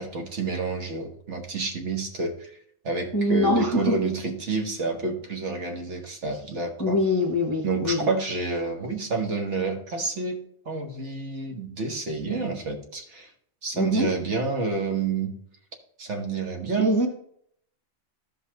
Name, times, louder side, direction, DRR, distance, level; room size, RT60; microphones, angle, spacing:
voice 1, 0.0-2.6 2.8-7.0 7.6-10.4 10.6-13.3 13.6-15.3 16.0-17.1, right 3 dB, 65° right, 1.6 m, -29 dB
voice 2, 3.1-4.0 6.8-8.1 13.7-14.1 16.8-17.1, left 1 dB, 20° left, 0.6 m, -23 dB
14.0 x 5.4 x 2.9 m
omnidirectional pair, 1.3 m